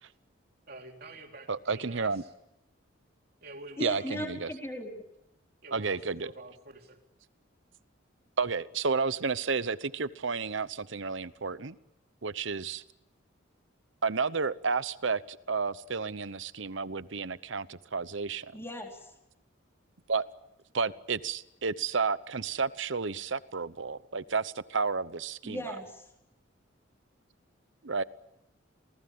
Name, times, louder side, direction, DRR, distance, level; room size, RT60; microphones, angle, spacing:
voice 1, 0.7-2.3 3.4-4.2 5.6-7.0, right 2 dB, 50° right, 3 dB, 3.4 m, -47 dB
voice 2, 1.5-2.2 3.8-4.5 5.7-6.3 8.4-11.8 12.2-12.8 14.0-18.5 20.1-20.3 20.7-25.8 27.8-28.0, right 4 dB, 65° right, 16 dB, 0.9 m, -31 dB
voice 3, 3.8-5.0 18.5-19.1 25.4-26.1, left 1 dB, 10° left, 1 dB, 4.2 m, -38 dB
28.0 x 19.0 x 8.6 m, 0.86 s
head